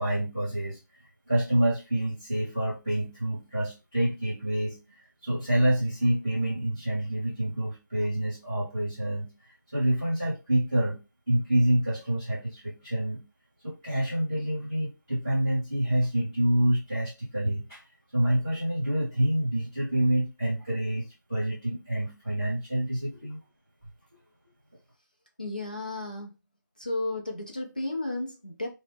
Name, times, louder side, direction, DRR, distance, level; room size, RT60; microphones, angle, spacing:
voice 1, 0.0-9.3 9.7-11.0 11.3-13.2 13.6-17.8 18.1-23.4, right 1 dB, 10° right, -17 dB, 0.8 m, -27 dB
voice 2, 25.4-26.3 26.8-28.7, left 2 dB, 25° left, 1 dB, 0.4 m, -33 dB
2.9 x 2.0 x 3.2 m, 0.27 s
figure-of-eight pair, 175°, 11 cm